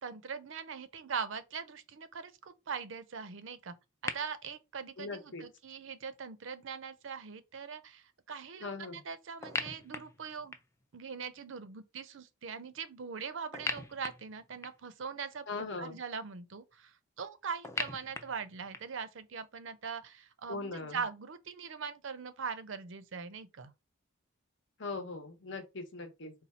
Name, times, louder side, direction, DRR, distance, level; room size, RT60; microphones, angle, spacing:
voice 1, 0.0-3.7 4.0-10.6 10.9-23.7, right 6 dB, 60° right, 0.5 m, -41 dB
sound 1, 4.1-4.2 9.4-10.8 13.5-14.9 17.6-19.0, left 3 dB, 15° left, 0.3 m, -39 dB
voice 2, 5.0-5.4 8.6-8.9 15.5-16.0 20.5-21.0 24.8-26.3, left 3 dB, 60° left, 0.9 m, -40 dB
4.1 x 2.3 x 4.2 m
head